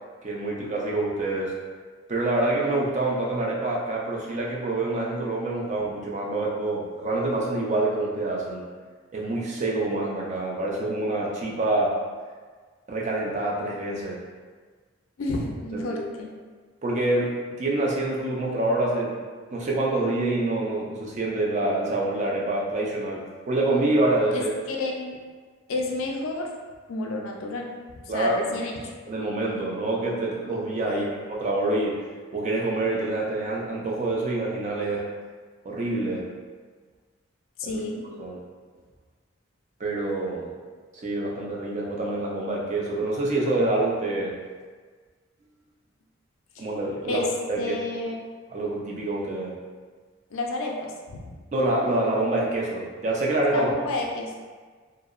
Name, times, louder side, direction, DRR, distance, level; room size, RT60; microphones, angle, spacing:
voice 1, 0.2-1.6 2.1-8.6 9.1-12.0 12.9-14.2 15.7-16.0 16.8-19.2 19.5-24.5 28.1-28.6 29.1-35.1 35.6-36.2 37.6-37.8 38.2-38.4 39.8-40.5 41.0-44.3 46.6-47.7 48.5-49.6 51.5-53.7, right 2 dB, 35° right, -3 dB, 0.4 m, -26 dB
voice 2, 15.2-16.3 24.3-25.2 25.7-26.5 26.9-27.7 28.1-28.9 30.9-31.2 37.6-38.1 46.6-46.7 47.1-47.3 47.6-48.2 50.3-51.2 53.5-54.3, left 2 dB, 75° left, 0 dB, 0.4 m, -30 dB
2.7 x 2.0 x 2.3 m, 1.5 s
head